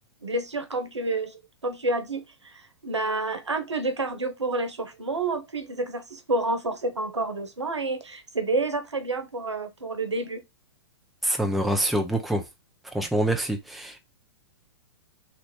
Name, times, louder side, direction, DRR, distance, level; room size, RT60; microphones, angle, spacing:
voice 1, 0.2-10.4, right 2 dB, 90° right, 0.9 m, -29 dB
voice 2, 11.2-12.4 12.9-14.0, right 1 dB, ahead, 0.5 m, -25 dB
3.2 x 2.6 x 4.5 m
figure-of-eight pair, 110°, 14 cm